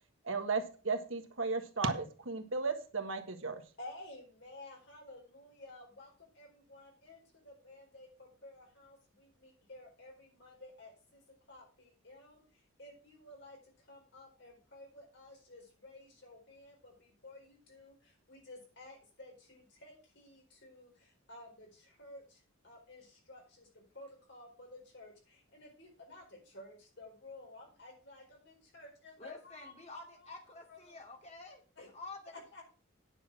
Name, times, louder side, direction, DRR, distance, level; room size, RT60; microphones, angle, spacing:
voice 1, 0.2-3.7, right 4 dB, 70° right, 7 dB, 1.4 m, -35 dB
voice 2, 3.8-11.2 11.5-30.3 30.7-31.0 31.8-31.9 32.3-32.6, left 2 dB, 55° left, 1 dB, 4.6 m, -54 dB
voice 3, 29.2-31.6 31.9-32.3, left 3 dB, 30° left, 1 dB, 2.6 m, -49 dB
9.7 x 6.2 x 6.2 m, 0.37 s
head